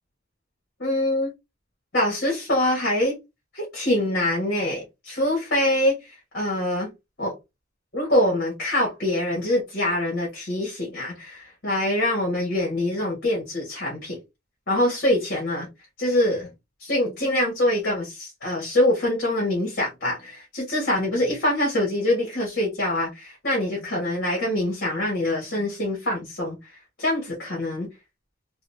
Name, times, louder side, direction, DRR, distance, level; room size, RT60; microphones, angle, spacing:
voice 1, 0.8-1.3 1.9-3.2 3.5-6.9 7.2-7.3 7.9-14.2 14.7-15.7 16.0-16.5 16.8-26.6 27.0-27.9, left 1 dB, 55° left, 1.6 m, -24 dB
4.1 x 2.4 x 2.7 m
head